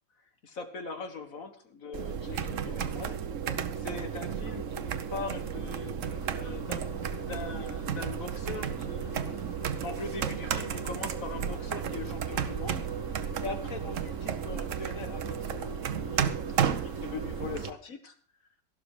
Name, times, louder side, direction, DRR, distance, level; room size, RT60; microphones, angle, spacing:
voice 1, 0.4-3.2 3.7-5.9 6.3-9.4 9.8-12.8 13.4-18.1, left 4 dB, 55° left, 7 dB, 1.9 m, -41 dB
sound 1, 1.9-17.7, right 8 dB, 55° right, 1.1 m, -33 dB
sound 2, 6.0-17.8, left 5 dB, 85° left, 2.1 m, -53 dB
13.0 x 12.0 x 4.9 m, 0.42 s
omnidirectional pair, 1.8 m